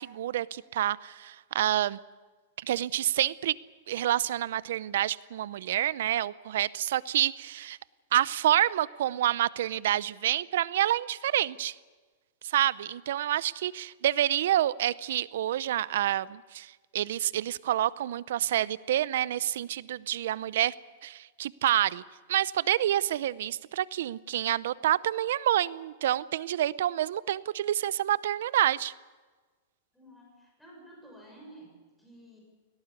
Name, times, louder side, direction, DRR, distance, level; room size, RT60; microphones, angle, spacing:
voice 1, 0.0-2.0 2.6-3.6 3.9-7.8 8.1-11.8 12.4-20.7 21.0-22.0 22.3-28.9, right 12 dB, 70° right, 20 dB, 0.6 m, -28 dB
voice 2, 29.9-32.4, right 1 dB, 5° left, -2 dB, 6.7 m, -52 dB
18.5 x 18.0 x 9.7 m, 1.4 s
supercardioid pair, 155°, 0 cm